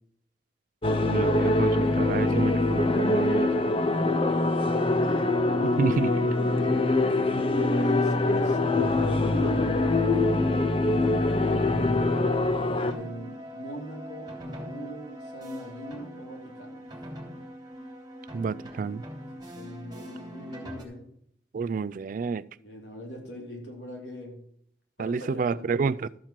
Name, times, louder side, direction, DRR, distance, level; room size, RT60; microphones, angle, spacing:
sound 1, 0.8-12.9, left 2 dB, 30° left, 0.6 m, -24 dB
voice 1, 1.0-3.7 5.8-6.3 18.3-19.0 21.5-22.5 25.0-26.1, right 4 dB, 50° right, 17 dB, 0.3 m, -29 dB
voice 2, 4.2-6.0 6.6-6.8 7.5-11.4 12.8-16.8 19.3-21.1 22.6-24.4 25.0-25.9, equal, 75° left, 0 dB, 3.1 m, -40 dB
sound 2, 12.8-20.8, right 1 dB, 25° right, 2.9 m, -42 dB
13.0 x 4.5 x 7.4 m, 0.69 s
head